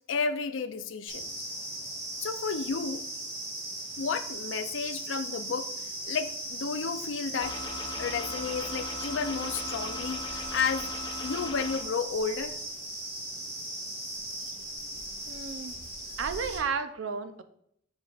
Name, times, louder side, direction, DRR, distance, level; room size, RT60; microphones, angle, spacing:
voice 1, 0.1-1.3 2.2-3.0 4.0-5.7 6.1-7.6 8.0-10.9 11.2-12.6, left 5 dB, 80° left, 11 dB, 0.5 m, -32 dB
sound 1, 1.1-16.6, right 1 dB, 35° right, 1.7 m, -38 dB
sound 2, 7.4-11.8, left 2 dB, 25° left, 0.9 m, -39 dB
voice 2, 15.3-15.8 16.2-17.4, right 5 dB, 85° right, 9 dB, 0.6 m, -33 dB
7.0 x 6.3 x 2.5 m, 0.70 s
head